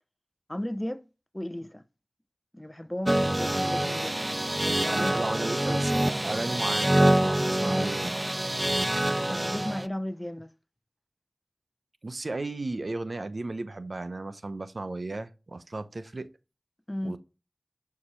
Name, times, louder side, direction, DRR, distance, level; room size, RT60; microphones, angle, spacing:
voice 1, 0.5-1.0 1.3-1.8 2.5-5.2 9.3-10.5 16.9-17.2, left 1 dB, 15° left, 0.8 m, -35 dB
sound 1, 3.1-9.9, right 1 dB, 25° right, 0.4 m, -26 dB
voice 2, 4.9-8.2 12.0-16.3 17.0-17.2, right 2 dB, 65° right, 0.8 m, -34 dB
11.5 x 4.9 x 5.7 m
wide cardioid pair, 45°, 0 cm